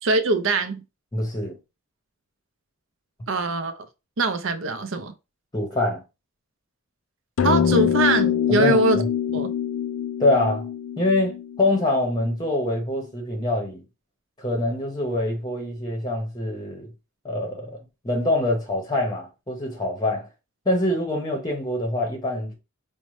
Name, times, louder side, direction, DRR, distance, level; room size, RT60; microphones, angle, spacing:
voice 1, 0.0-0.8 3.3-3.9 4.2-5.1 7.4-9.0 9.3-9.5, right 2 dB, 60° right, 0.6 m, -22 dB
voice 2, 1.1-1.6 5.5-6.0 8.5-9.1 10.2-10.7 11.0-13.8 14.4-16.9 17.2-17.7 18.0-20.3 20.7-22.5, left 1 dB, 20° left, 0.8 m, -24 dB
sound 1, 7.4-12.0, left 8 dB, 65° left, 0.4 m, -24 dB
5.2 x 2.1 x 3.1 m
head